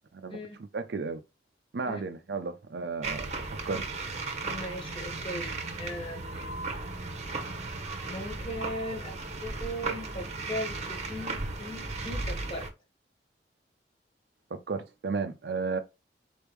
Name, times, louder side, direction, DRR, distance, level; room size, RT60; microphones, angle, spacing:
voice 1, 0.7-1.2 1.7-3.9 14.5-15.8, right 4 dB, 65° right, 0.4 m, -33 dB
sound 1, 3.0-12.7, right 3 dB, 40° right, 0.9 m, -36 dB
voice 2, 4.4-6.7 8.1-12.7, equal, 25° left, 1.5 m, -38 dB
4.4 x 3.4 x 3.0 m
head